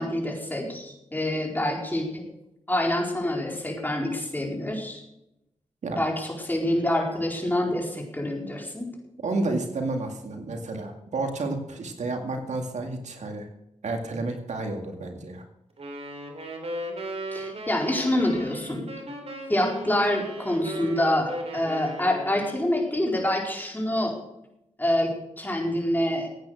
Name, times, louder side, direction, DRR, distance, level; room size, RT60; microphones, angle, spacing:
voice 1, 0.0-2.2 2.7-5.0 6.0-8.9 17.3-18.9 19.5-24.1 24.8-26.3, left 1 dB, 15° left, 0 dB, 4.6 m, -26 dB
voice 2, 9.2-13.5 13.8-15.4, right 2 dB, 85° right, 4 dB, 2.2 m, -30 dB
sound 1, 15.8-22.6, right 1 dB, 60° right, 3.4 m, -37 dB
15.5 x 9.2 x 6.4 m, 0.86 s
cardioid pair, 65°, 12 cm